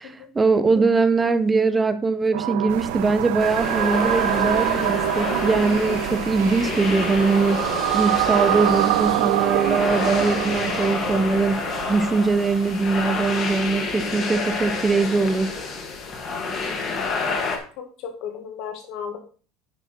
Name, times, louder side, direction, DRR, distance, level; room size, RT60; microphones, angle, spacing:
voice 1, 0.0-7.7 7.9-15.5, right 4 dB, 10° right, 0.5 m, -22 dB
sound 1, 2.3-12.4, right 17 dB, 85° right, 0.4 m, -25 dB
sound 2, 2.7-16.1, right 10 dB, 70° right, 1.0 m, -38 dB
sound 3, 3.4-17.6, left 4 dB, 25° left, 1.5 m, -29 dB
voice 2, 17.8-19.2, left 7 dB, 50° left, 1.7 m, -34 dB
10.0 x 5.5 x 4.3 m
cardioid pair, 175°, 0 cm